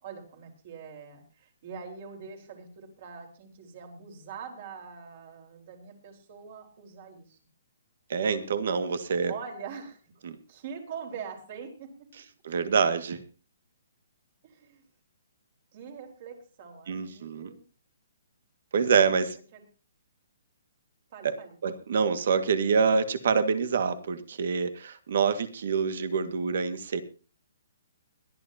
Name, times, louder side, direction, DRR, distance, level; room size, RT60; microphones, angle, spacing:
voice 1, 0.0-7.4 9.3-10.0 10.5-12.1 14.4-14.9 15.7-17.6 19.1-19.3 19.5-19.6 21.1-21.6, right 6 dB, 40° right, 3 dB, 4.4 m, -43 dB
voice 2, 8.1-9.3 10.2-10.4 12.4-13.2 16.9-17.5 18.7-19.3 21.2-21.3 21.6-27.0, right 5 dB, 55° right, 10 dB, 1.9 m, -26 dB
21.5 x 13.0 x 2.9 m, 0.36 s
hypercardioid pair, 170°, 0 cm